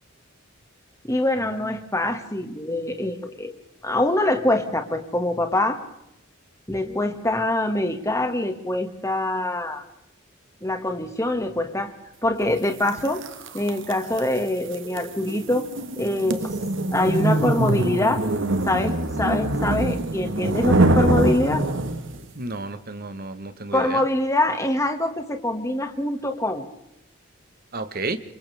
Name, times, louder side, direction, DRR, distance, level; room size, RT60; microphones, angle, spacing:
voice 1, 1.0-3.5 3.8-5.8 6.7-9.8 10.6-11.9 12.2-13.2 13.5-15.7 16.0-16.5 16.9-18.2 18.7-21.6 23.7-26.6, left 1 dB, 15° left, 6 dB, 1.9 m, -24 dB
sound 1, 12.9-22.2, right 2 dB, 60° right, 1.5 m, -24 dB
voice 2, 22.4-24.0 27.7-28.2, right 3 dB, 45° right, 10 dB, 1.3 m, -31 dB
28.5 x 26.0 x 3.5 m, 0.81 s
head